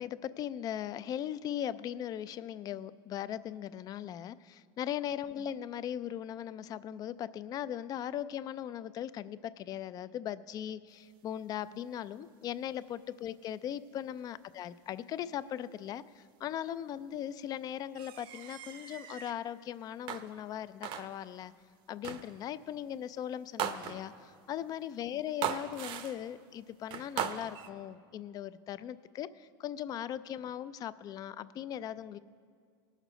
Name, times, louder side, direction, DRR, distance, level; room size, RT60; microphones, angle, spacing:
voice 1, 0.0-21.5 21.9-32.2, left 10 dB, 35° left, 16 dB, 0.3 m, -39 dB
sound 1, 18.0-19.4 20.1-20.6 20.8-21.4 22.0-22.4 23.6-24.3 25.4-26.3 26.9-27.7, right 9 dB, 45° right, 0.7 m, -38 dB
18.5 x 6.5 x 5.0 m, 2.1 s
supercardioid pair, 125°, 11 cm